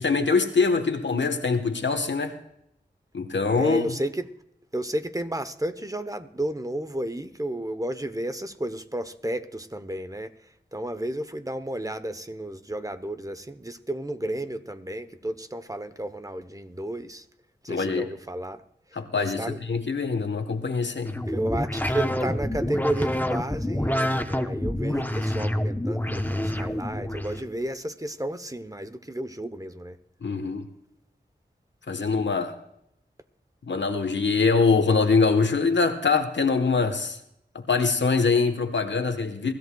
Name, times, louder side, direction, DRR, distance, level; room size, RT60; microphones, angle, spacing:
voice 1, 0.0-2.3 3.1-3.9 17.7-18.1 18.9-21.2 30.2-30.7 31.9-32.5 33.7-37.2 37.5-39.5, left 4 dB, 85° left, 1.2 m, -23 dB
voice 2, 3.6-4.3 4.7-10.3 10.7-17.3 17.6-18.6 19.1-19.6 21.3-30.0, right 1 dB, 20° right, 0.9 m, -32 dB
sound 1, 21.1-27.4, left 1 dB, 10° left, 0.9 m, -27 dB
24.0 x 13.5 x 2.3 m
wide cardioid pair, 45°, 18 cm